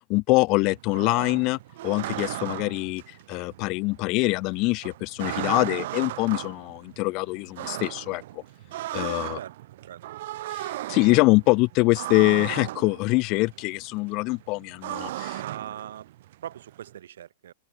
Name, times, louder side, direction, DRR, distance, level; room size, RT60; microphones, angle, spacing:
voice 1, 0.1-1.6 1.8-3.0 3.3-8.2 8.9-9.4 10.5-15.4, left 24 dB, 35° left, 1.9 m, -24 dB
sound 1, 0.5-16.9, right 15 dB, 60° right, 1.6 m, -37 dB
voice 2, 9.8-10.1 15.3-16.1 16.4-17.5, right 10 dB, 80° right, 4.8 m, -40 dB
open air
supercardioid pair, 155°, 0 cm